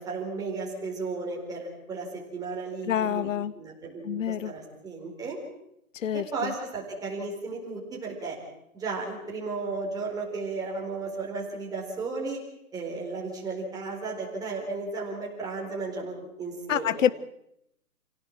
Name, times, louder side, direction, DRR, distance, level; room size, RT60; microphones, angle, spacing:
voice 1, 0.0-3.3 3.6-5.4 6.1-8.4 8.7-12.4 12.7-17.1, right 3 dB, 10° right, -3 dB, 4.5 m, -34 dB
voice 2, 2.9-3.5 4.1-4.5 6.0-6.2 16.7-17.1, left 9 dB, 60° left, 19 dB, 0.8 m, -26 dB
29.0 x 17.5 x 7.5 m, 0.81 s
hypercardioid pair, 160°, 43 cm